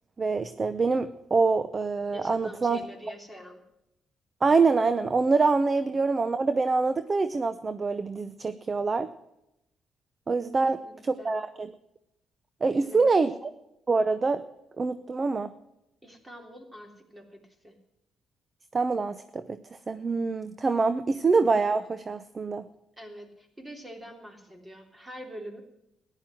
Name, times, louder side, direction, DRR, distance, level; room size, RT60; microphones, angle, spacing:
voice 1, 0.2-2.8 4.4-9.1 10.3-11.7 12.6-13.3 13.9-14.4 14.8-15.5 18.7-19.6 19.9-22.7, right 4 dB, 30° right, 12 dB, 0.7 m, -25 dB
voice 2, 2.1-3.6 10.6-11.3 12.7-13.2 16.0-17.8 23.0-25.6, equal, 15° right, 3 dB, 3.3 m, -45 dB
14.5 x 11.0 x 7.7 m, 0.86 s
cardioid pair, 90°, 0 cm